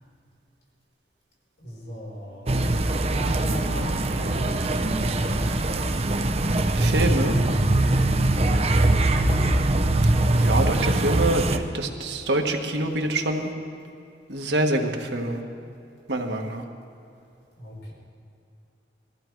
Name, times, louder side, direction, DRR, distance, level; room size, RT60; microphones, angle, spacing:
voice 1, 1.6-2.5 3.0-5.2 9.1-9.5 17.6-17.9, equal, 85° left, -3 dB, 4.5 m, -36 dB
sound 1, 2.5-11.6, right 2 dB, 35° right, 0.6 m, -22 dB
voice 2, 6.7-7.3 10.3-13.5 14.3-15.4 16.1-16.6, right 1 dB, 70° right, 2 dB, 1.5 m, -25 dB
21.0 x 14.5 x 4.7 m, 2.6 s
head